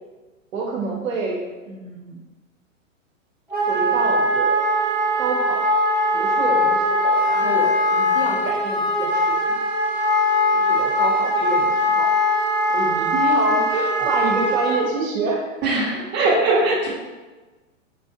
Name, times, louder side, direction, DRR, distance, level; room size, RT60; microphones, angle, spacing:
voice 1, 0.5-2.2 3.6-4.6 5.2-5.6 6.1-9.6 10.5-12.1 12.7-15.4 15.9-16.0, right 3 dB, 80° right, -1 dB, 0.9 m, -28 dB
Wind instrument woodwind instrument, 3.5-14.8, left 1 dB, 5° right, 0.8 m, -20 dB
voice 2, 15.6-16.9, right 2 dB, 25° right, -5 dB, 1.0 m, -20 dB
4.3 x 2.4 x 2.6 m, 1.2 s
hypercardioid pair, 120°, 40 cm